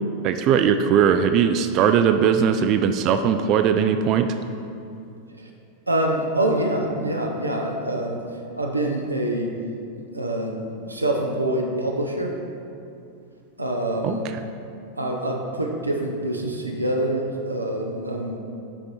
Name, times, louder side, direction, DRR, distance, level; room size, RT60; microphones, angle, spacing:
voice 1, 0.2-4.3 14.0-14.2, right 8 dB, 40° right, 8 dB, 0.3 m, -19 dB
voice 2, 5.9-8.2 8.6-9.5 10.1-12.3 13.6-14.3 15.0-18.4, right 1 dB, 85° right, 1 dB, 0.7 m, -25 dB
7.1 x 5.1 x 4.6 m, 2.6 s
figure-of-eight pair, 90°, 0 cm